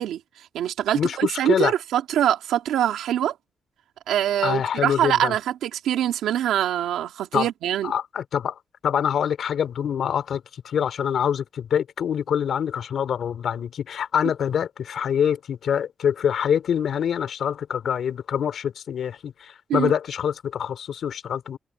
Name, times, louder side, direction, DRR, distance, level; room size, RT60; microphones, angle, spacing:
voice 1, 0.0-3.3 4.1-7.9 19.7-19.9, right 11 dB, 90° right, 2.2 m, -24 dB
voice 2, 0.9-1.7 4.4-5.3 7.3-7.5 7.8-21.6, left 8 dB, 75° left, 2.9 m, -25 dB
cardioid pair, 60°, 0 cm